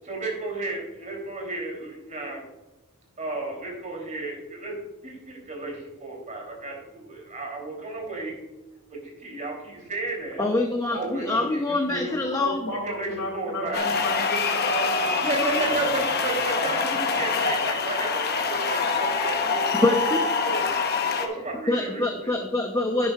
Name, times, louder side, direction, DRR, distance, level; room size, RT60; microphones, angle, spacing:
voice 1, 0.0-2.4 3.2-8.4 8.9-10.4 10.9-12.1 12.8-13.9 15.2-20.6 21.0-22.3, right 2 dB, 35° right, 0 dB, 3.0 m, -33 dB
voice 2, 10.4-12.7 19.8-20.3 21.7-23.1, left 2 dB, 15° left, 3 dB, 0.7 m, -25 dB
voice 3, 11.6-12.0 12.3-15.8, left 1 dB, 75° left, 0 dB, 3.4 m, -34 dB
sound 1, 13.7-21.3, left 4 dB, 45° left, 0.9 m, -25 dB
11.0 x 9.9 x 2.3 m, 1.0 s
head